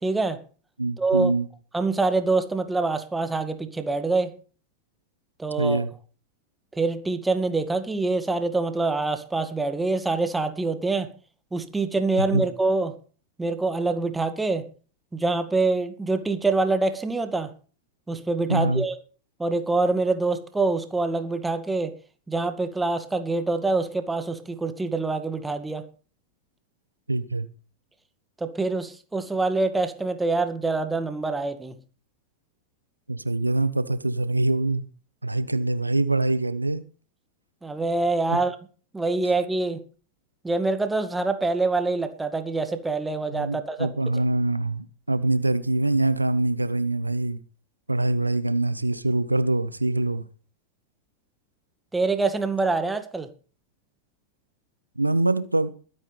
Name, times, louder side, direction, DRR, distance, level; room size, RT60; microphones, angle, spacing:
voice 1, 0.0-0.4 1.0-1.3 1.7-4.3 5.4-5.8 6.8-11.1 11.5-12.9 13.4-14.6 15.1-17.5 18.1-18.9 19.4-21.9 22.3-25.8 28.4-31.7 37.6-38.6 38.9-39.8 40.4-43.9 51.9-53.3, right 3 dB, 10° right, 2.1 m, -25 dB
voice 2, 0.8-1.5 5.6-5.9 12.3-12.4 18.5-18.9 27.1-27.5 33.1-34.8 35.2-36.8 38.3-38.4 43.3-47.4 47.9-50.2 55.0-55.7, right 2 dB, 85° right, 1.1 m, -24 dB
22.0 x 9.9 x 3.4 m
figure-of-eight pair, 90°, 0 cm